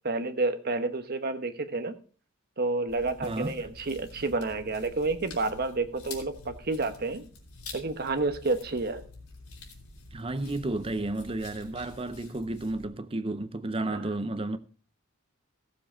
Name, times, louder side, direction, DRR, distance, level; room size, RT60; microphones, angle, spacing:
voice 1, 0.0-1.9 2.6-7.3 7.7-9.0 13.9-14.0, right 3 dB, 45° right, 1.1 m, -30 dB
sound 1, 2.9-12.8, left 3 dB, 90° left, 3.3 m, -47 dB
voice 2, 10.1-14.6, right 2 dB, 25° right, 0.6 m, -32 dB
15.0 x 7.4 x 4.4 m
head